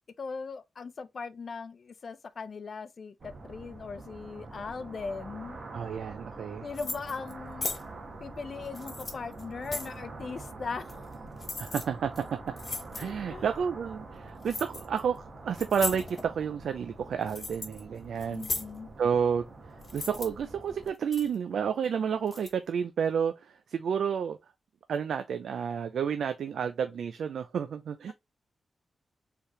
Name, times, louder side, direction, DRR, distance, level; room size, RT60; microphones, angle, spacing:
voice 1, 0.2-5.6 6.6-7.7 8.2-10.9 13.0-13.4 18.3-18.9, left 4 dB, 55° left, 0.5 m, -39 dB
sound 1, 3.2-20.9, right 3 dB, 55° right, 1.4 m, -45 dB
voice 2, 5.7-6.7 11.6-12.4 13.0-18.5 19.0-19.5 19.9-24.4 24.9-28.1, right 7 dB, 85° right, 0.4 m, -30 dB
sound 2, 6.7-7.3 7.6-7.8 8.7-10.0 10.9-11.1 11.4-11.8 12.2-12.3 12.6-13.1 14.4-15.0 15.5-16.3 16.9-17.8 18.2-18.7 19.8-20.3 20.9-21.4 22.3-22.5, left 3 dB, 40° left, 1.2 m, -37 dB
4.6 x 3.5 x 3.1 m
wide cardioid pair, 100°, 0 cm